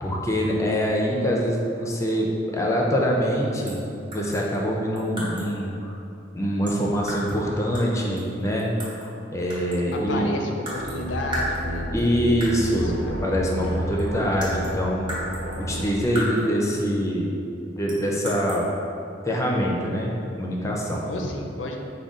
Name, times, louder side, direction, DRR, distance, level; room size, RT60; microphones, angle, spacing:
voice 1, 0.0-3.8 4.1-5.9 6.3-8.7 9.3-10.3 11.9-13.0 13.2-15.1 15.6-17.3 17.8-18.6 19.3-20.1 20.4-21.1, equal, 15° left, -2 dB, 0.4 m, -24 dB
sound 1, 3.7-3.9 4.1-5.6 6.7-7.4 7.7-9.1 9.5-10.1 10.7-11.0 11.3-12.0 12.4-12.7 13.6-13.7 14.0-16.6 17.9-18.6, equal, 25° right, 0.9 m, -35 dB
voice 2, 10.1-13.2 13.6-14.1 21.1-21.8, left 1 dB, 80° left, 2 dB, 0.5 m, -33 dB
sound 2, 10.7-16.0, equal, 65° right, 1.0 m, -31 dB
5.1 x 2.2 x 3.6 m, 2.6 s
head